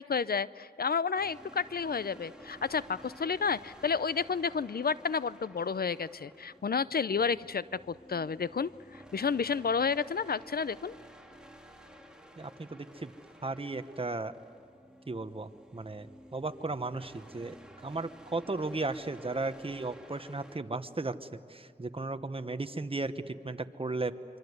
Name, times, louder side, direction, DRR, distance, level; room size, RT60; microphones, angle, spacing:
voice 1, 0.0-11.0, left 5 dB, 65° left, 17 dB, 0.6 m, -31 dB
sound 1, 1.2-20.6, right 1 dB, 5° right, 2.8 m, -54 dB
voice 2, 12.4-13.1 13.4-14.3 15.1-17.6 17.8-24.1, right 3 dB, 35° right, 10 dB, 1.1 m, -35 dB
25.5 x 24.5 x 8.2 m, 2.2 s
cardioid pair, 45°, 17 cm